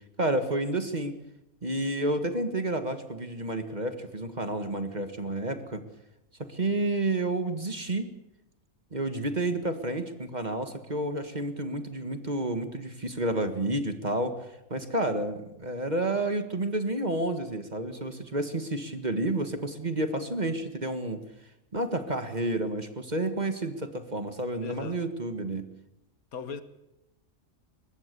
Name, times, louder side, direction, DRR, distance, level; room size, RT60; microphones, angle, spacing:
voice 1, 0.2-1.1 1.6-5.8 6.4-8.1 8.9-14.4 14.7-21.2 21.7-25.7, right 2 dB, 30° right, 1.8 m, -30 dB
voice 2, 24.6-25.0 26.3-26.6, left 6 dB, 80° left, 1.8 m, -38 dB
23.0 x 20.5 x 6.9 m
omnidirectional pair, 1.5 m